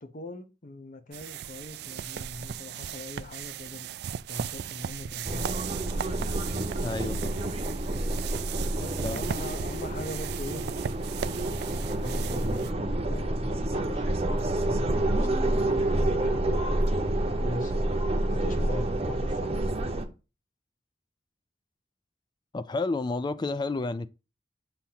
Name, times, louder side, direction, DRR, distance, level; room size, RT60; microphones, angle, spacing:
voice 1, 0.0-4.0 4.3-5.6 6.4-7.0 8.8-10.7 11.9-16.7 17.4-17.7 18.2-19.8, left 2 dB, 45° left, 0.8 m, -41 dB
sound 1, 1.1-12.7, right 9 dB, 65° right, 0.3 m, -37 dB
sound 2, 5.2-20.0, right 1 dB, 35° right, 0.7 m, -28 dB
voice 2, 6.8-7.2 9.0-9.3 22.5-24.1, left 3 dB, 25° left, 0.3 m, -30 dB
7.0 x 2.9 x 5.6 m
head